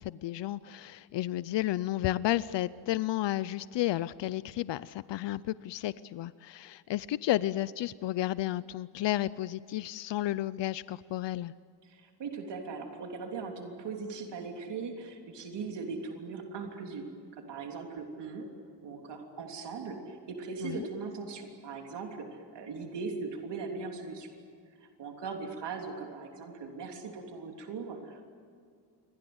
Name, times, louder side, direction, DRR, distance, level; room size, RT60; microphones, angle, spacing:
voice 1, 0.0-11.5 20.6-20.9, left 14 dB, 80° left, 17 dB, 0.6 m, -32 dB
voice 2, 11.8-17.0 17.3-18.5 18.8-24.3 25.0-28.2, right 4 dB, 75° right, 2 dB, 3.4 m, -39 dB
28.5 x 24.0 x 8.0 m, 2.2 s
wide cardioid pair, 170°, 42 cm